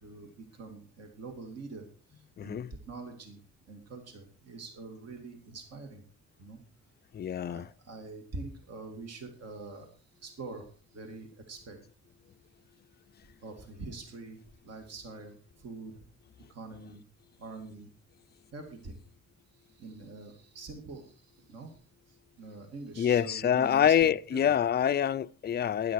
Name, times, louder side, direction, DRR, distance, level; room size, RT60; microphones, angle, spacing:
voice 1, 0.0-3.4 3.7-6.0 6.4-6.6 7.4-9.9 10.2-11.8 13.4-15.9 16.5-17.0 17.4-17.9 18.5-19.0 19.7-21.8 22.1-24.5, right 3 dB, 55° right, 2.5 m, -45 dB
voice 2, 2.4-2.7 7.1-7.7 23.0-25.9, left 9 dB, 35° left, 0.5 m, -26 dB
12.5 x 10.5 x 4.7 m
cardioid pair, 90°, 30 cm